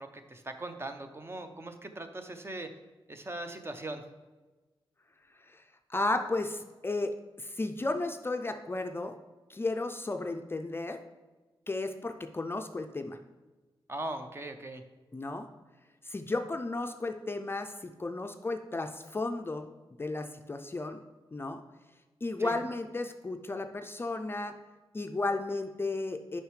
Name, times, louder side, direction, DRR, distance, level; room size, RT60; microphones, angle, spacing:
voice 1, 0.0-2.7 3.1-4.0 13.9-14.8 22.4-22.6, right 2 dB, 25° right, 7 dB, 0.6 m, -40 dB
voice 2, 5.9-9.2 9.5-11.0 11.7-13.2 15.1-15.5 16.0-19.7 20.0-21.0 21.3-21.6 22.2-24.6 24.9-26.4, left 2 dB, 25° left, 6 dB, 0.4 m, -34 dB
8.0 x 5.5 x 3.2 m, 1.2 s
wide cardioid pair, 90°, 9 cm